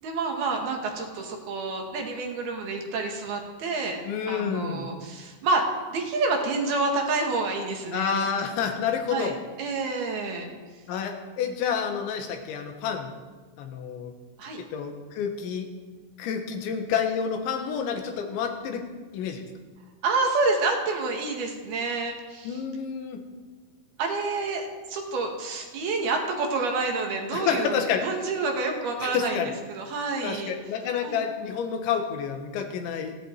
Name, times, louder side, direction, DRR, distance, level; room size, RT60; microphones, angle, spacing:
voice 1, 0.0-4.0 4.3-8.3 9.1-9.3 9.6-10.5 14.4-14.6 20.0-22.6 24.0-29.4 29.7-30.5 31.0-31.2, right 3 dB, 60° right, 2 dB, 3.3 m, -28 dB
voice 2, 4.1-4.9 7.9-9.4 10.9-13.2 13.6-14.1 14.6-15.7 16.2-18.9 19.1-19.4 22.5-23.2 27.3-28.1 29.0-29.5 30.2-33.2, left 7 dB, 70° left, 5 dB, 3.6 m, -29 dB
29.5 x 10.5 x 4.6 m, 1.3 s
omnidirectional pair, 5.7 m